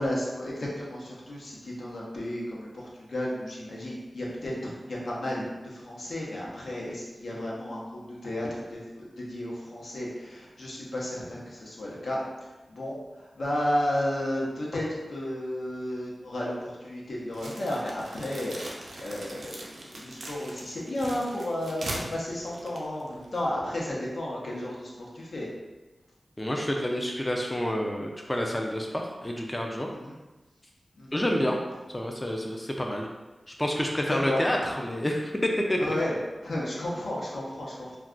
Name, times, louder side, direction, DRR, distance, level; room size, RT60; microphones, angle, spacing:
voice 1, 0.0-25.5 29.9-30.2 31.0-31.2 34.1-34.4 35.8-36.1 36.4-38.0, left 1 dB, 80° left, -5 dB, 0.7 m, -33 dB
sound 1, 17.3-23.4, right 2 dB, 90° right, 0.5 m, -40 dB
voice 2, 26.4-29.9 31.1-31.6 31.9-33.1 33.5-35.8, equal, 15° left, 0 dB, 0.3 m, -28 dB
2.3 x 2.3 x 3.7 m, 1.1 s
wide cardioid pair, 75°, 0 cm